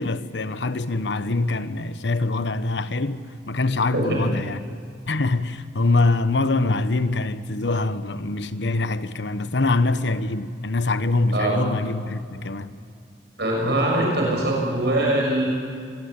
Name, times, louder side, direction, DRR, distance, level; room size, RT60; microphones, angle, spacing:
voice 1, 0.0-4.6 5.1-12.7, left 2 dB, 80° left, 1.0 m, -24 dB
voice 2, 3.9-4.3 11.3-11.6 13.4-15.5, right 1 dB, 65° right, 6.5 m, -22 dB
25.0 x 19.5 x 8.9 m
head